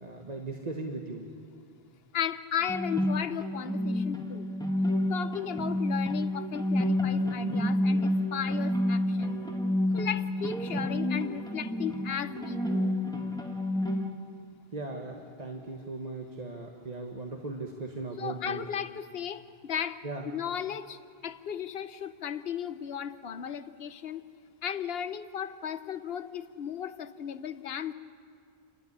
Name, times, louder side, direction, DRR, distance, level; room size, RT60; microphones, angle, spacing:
voice 1, 0.0-1.3 14.7-18.6 20.0-20.3, right 3 dB, 40° right, 1 dB, 1.5 m, -38 dB
voice 2, 2.1-4.5 5.1-9.4 9.9-13.0 18.2-21.0 21.2-24.2 24.6-27.9, left 8 dB, 75° left, 13 dB, 1.1 m, -35 dB
sound 1, 2.7-14.1, left 1 dB, 5° left, 1.6 m, -29 dB
29.0 x 13.0 x 10.0 m, 2.2 s
omnidirectional pair, 1.0 m